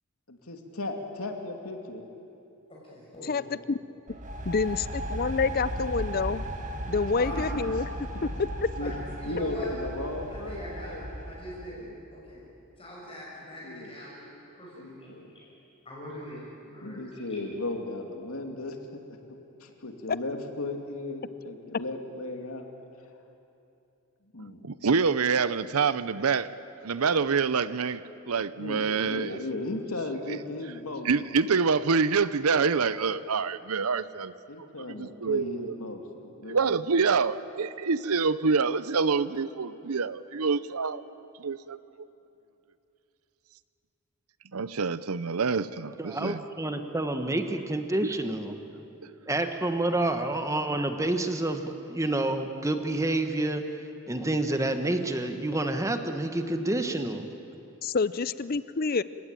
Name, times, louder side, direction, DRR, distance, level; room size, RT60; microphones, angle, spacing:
voice 1, 0.3-2.1 7.3-7.7 8.1-8.3 8.8-8.9 9.3-11.2 11.7-12.0 13.6-13.9 14.7-15.3 16.8-18.8 19.3-22.6 24.3-24.6 28.5-31.3 34.5-36.7, left 2 dB, 80° left, 4 dB, 2.6 m, -36 dB
voice 2, 2.7-3.5 7.2-7.4 8.8-8.9 9.2-9.7 10.3-11.8 12.1-12.4 12.8-14.3 14.6-15.5 15.8-17.4, left 1 dB, 25° left, -5 dB, 6.1 m, -42 dB
voice 3, 3.2-3.8 4.4-4.8 5.1-6.4 6.9-7.9 8.2-8.3 8.6-8.7 57.8-59.0, left 4 dB, 45° left, 16 dB, 0.5 m, -27 dB
sound 1, 4.1-11.8, right 1 dB, 35° right, 1.9 m, -36 dB
voice 4, 24.6-26.5 26.8-28.0 28.3-29.4 30.3-30.4 31.0-34.3 35.0-35.8 36.4-41.0 41.4-41.8 44.5-46.4, right 5 dB, 85° right, 16 dB, 0.7 m, -26 dB
voice 5, 46.0-48.6 49.3-53.6 54.1-57.3, right 2 dB, 15° right, 7 dB, 1.3 m, -28 dB
29.5 x 17.0 x 9.1 m, 2.8 s
head